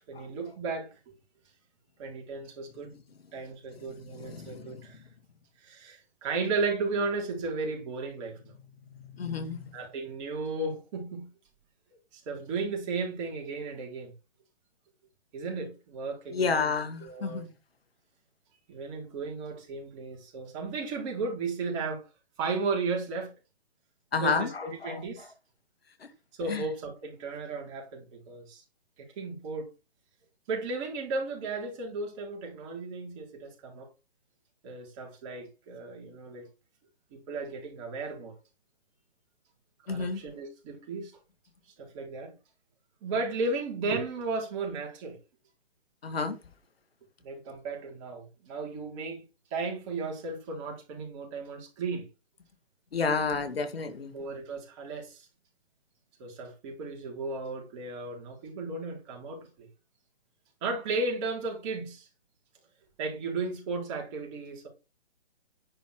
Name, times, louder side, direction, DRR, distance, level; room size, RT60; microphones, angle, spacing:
voice 1, 0.1-1.1 2.0-2.9 3.3-5.0 5.6-8.5 9.7-11.3 12.1-14.1 15.3-16.7 17.0-17.4 18.7-22.0 22.4-23.3 24.2-25.3 26.4-28.6 29.0-29.7 30.5-33.9 34.6-36.5 37.1-38.4 39.9-41.2 41.8-42.3 43.0-45.2 47.2-49.2 49.5-52.1 54.1-55.3 56.2-59.7 60.6-62.1 63.0-64.7, right 3 dB, 30° right, 4.3 m, -35 dB
voice 2, 3.7-4.9 9.1-9.6 16.3-17.5 24.1-25.0 26.0-26.1 26.5-26.6 39.9-40.2 46.0-46.4 52.9-54.1, left 5 dB, 70° left, 2.5 m, -31 dB
10.5 x 5.5 x 6.3 m
hypercardioid pair, 145°, 31 cm